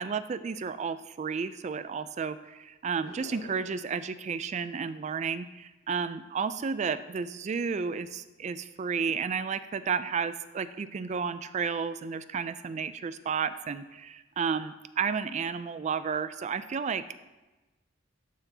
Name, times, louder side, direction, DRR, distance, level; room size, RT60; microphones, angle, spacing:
voice 1, 0.0-17.2, right 6 dB, 35° right, 13 dB, 0.3 m, -32 dB
sound 1, 3.0-3.9, left 3 dB, 85° left, 1.5 m, -48 dB
12.0 x 5.9 x 2.8 m, 1.1 s
head